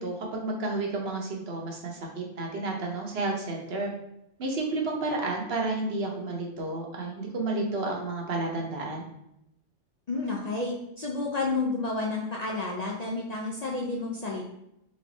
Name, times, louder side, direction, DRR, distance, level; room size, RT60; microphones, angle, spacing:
voice 1, 0.0-3.9 4.4-9.1, right 2 dB, 65° right, 0 dB, 1.0 m, -31 dB
voice 2, 10.1-14.5, left 3 dB, 55° left, -2 dB, 0.5 m, -30 dB
3.3 x 3.2 x 3.9 m, 0.81 s
omnidirectional pair, 1.2 m